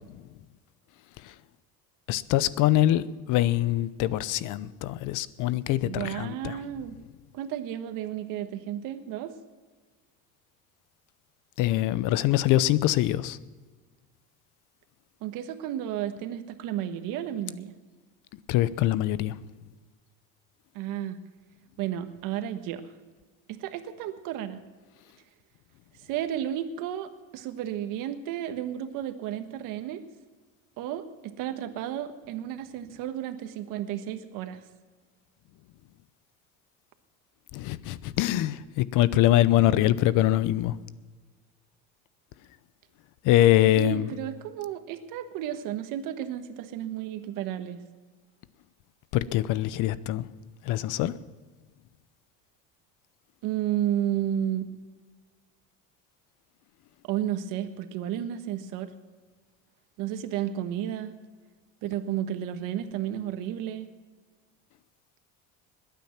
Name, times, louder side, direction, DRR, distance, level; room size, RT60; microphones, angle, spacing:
voice 1, 2.1-6.6 11.6-13.4 18.5-19.4 37.5-40.8 43.2-44.0 49.1-50.2 50.6-51.1, left 14 dB, 65° left, 17 dB, 0.8 m, -24 dB
voice 2, 5.8-6.9 7.3-9.3 15.2-17.7 20.7-21.2 21.8-22.8 23.5-24.6 26.1-30.0 30.8-34.6 43.8-47.8 53.4-54.7 57.0-58.9 60.0-61.2 61.8-63.9, right 11 dB, 75° right, 9 dB, 1.4 m, -32 dB
21.0 x 9.1 x 5.9 m, 1.4 s
cardioid pair, 135°, 33 cm